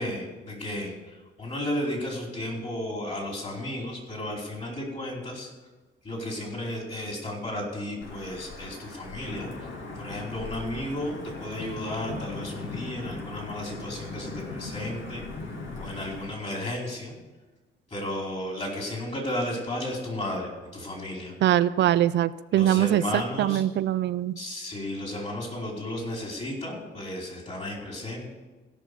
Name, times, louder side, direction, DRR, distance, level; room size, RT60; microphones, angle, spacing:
voice 1, 0.0-5.5 6.0-9.7 10.0-15.2 15.7-17.1 17.9-21.3 22.5-23.6 24.4-28.3, left 1 dB, 35° left, -1 dB, 4.6 m, -33 dB
Wind / Thunder / Rain, 8.0-16.3, left 3 dB, 75° left, 2.3 m, -39 dB
voice 2, 21.4-24.4, right 12 dB, 65° right, 14 dB, 0.4 m, -23 dB
16.5 x 5.8 x 7.0 m, 1.2 s
cardioid pair, 90°, 20 cm